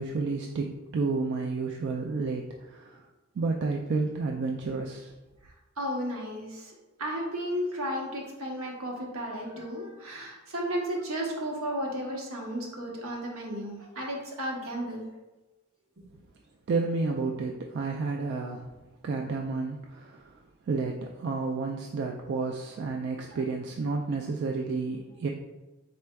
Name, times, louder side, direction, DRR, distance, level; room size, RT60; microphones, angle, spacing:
voice 1, 0.0-3.0 3.4-5.1 16.7-18.6 19.0-20.2 20.7-25.3, right 4 dB, 55° right, 1 dB, 0.3 m, -31 dB
voice 2, 5.8-15.1 23.3-23.4, equal, 80° right, -1 dB, 1.0 m, -34 dB
4.5 x 4.2 x 2.2 m, 1.1 s
head